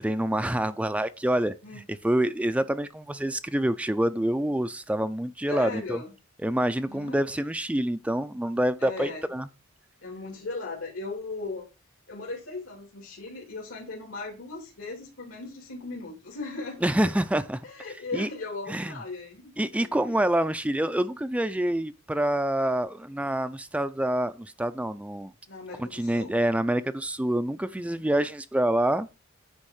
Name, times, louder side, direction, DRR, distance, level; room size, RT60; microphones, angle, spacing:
voice 1, 0.0-6.0 6.4-9.5 16.8-17.6 18.1-18.3 18.7-18.9 19.6-25.3 25.8-29.1, right 1 dB, 5° right, 0.4 m, -27 dB
voice 2, 5.5-6.1 6.9-7.2 8.8-9.2 10.0-11.7 12.1-16.8 17.6-20.2 25.5-26.4 27.6-28.0, left 3 dB, 80° left, 3.0 m, -38 dB
9.8 x 3.6 x 6.4 m
head